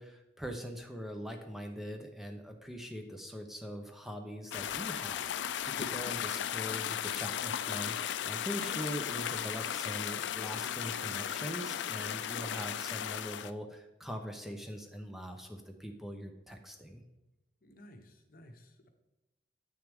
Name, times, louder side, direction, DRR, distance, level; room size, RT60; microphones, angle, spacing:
voice 1, 0.0-17.0, equal, ahead, 4 dB, 0.5 m, -42 dB
sound 1, 4.5-13.5, left 9 dB, 80° left, 0.4 m, -36 dB
voice 2, 17.6-18.9, equal, 55° left, 6 dB, 0.9 m, -55 dB
8.3 x 6.4 x 3.5 m, 0.94 s
head